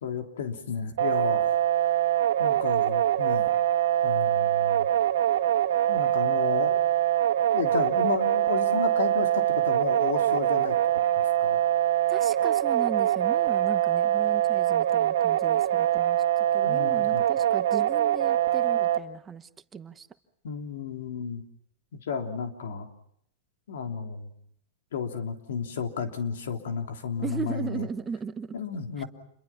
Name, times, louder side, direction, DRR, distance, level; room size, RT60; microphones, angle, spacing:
voice 1, 0.0-1.6 2.4-3.5 4.0-4.9 5.9-6.8 7.5-10.8 11.1-11.6 16.6-17.2 20.4-21.4 21.9-22.9 23.7-24.3 24.9-27.9 28.5-29.0, left 6 dB, 85° left, 4 dB, 3.2 m, -32 dB
sound 1, 1.0-19.0, right 12 dB, 85° right, 1.7 m, -24 dB
voice 2, 12.1-20.1 27.2-28.5 29.0-29.1, right 6 dB, 15° right, 10 dB, 1.0 m, -37 dB
28.5 x 23.0 x 5.9 m, 0.70 s
supercardioid pair, 145°, 0 cm